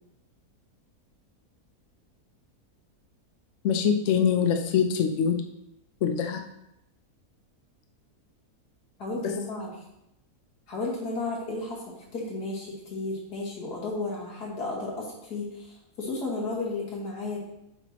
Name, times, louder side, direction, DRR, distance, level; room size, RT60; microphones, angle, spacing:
voice 1, 3.6-5.4 6.0-6.4, left 7 dB, 60° left, 5 dB, 0.8 m, -24 dB
voice 2, 9.0-9.7 10.7-17.4, left 2 dB, 75° left, -3 dB, 2.5 m, -33 dB
7.9 x 5.9 x 3.0 m, 0.84 s
omnidirectional pair, 1.7 m